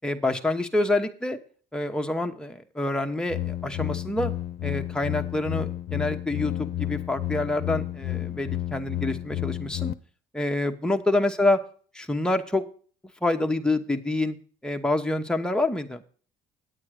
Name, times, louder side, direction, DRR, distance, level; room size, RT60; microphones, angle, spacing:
voice 1, 0.0-1.4 1.7-4.3 4.6-9.9 10.3-11.6 11.9-12.7 13.2-14.4 14.6-16.0, left 2 dB, 5° left, 4 dB, 1.0 m, -27 dB
sound 1, 3.3-9.9, left 13 dB, 65° left, 0.6 m, -31 dB
8.9 x 8.9 x 4.9 m, 0.43 s
cardioid pair, 110°, 17 cm